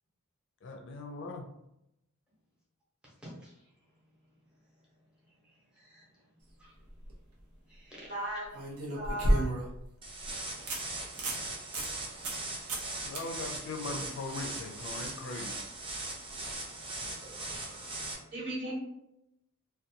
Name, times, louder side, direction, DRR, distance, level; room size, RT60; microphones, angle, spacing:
voice 1, 0.6-1.5 13.0-15.6, left 3 dB, 55° left, 3 dB, 0.4 m, -40 dB
voice 2, 3.0-3.7 5.4-6.2 6.6-6.8 7.7-8.5 10.6-11.3 11.8-13.2 13.8-13.9 16.4-18.3, equal, 5° right, -6 dB, 0.9 m, -54 dB
sound 1, 6.8-7.1 8.5-9.8 10.2-10.3 10.7-10.8 11.1-11.4 11.7-11.9 12.2-12.4 12.7-12.9 13.2-13.3 16.3-16.4, right 1 dB, 75° right, 0.7 m, -30 dB
voice 3, 8.1-8.4 8.9-9.4 18.3-18.7, right 1 dB, 50° right, -6 dB, 1.3 m, -36 dB
sound 2, 10.0-18.1, right 2 dB, 25° right, 0.5 m, -40 dB
2.5 x 2.2 x 2.7 m, 0.82 s
head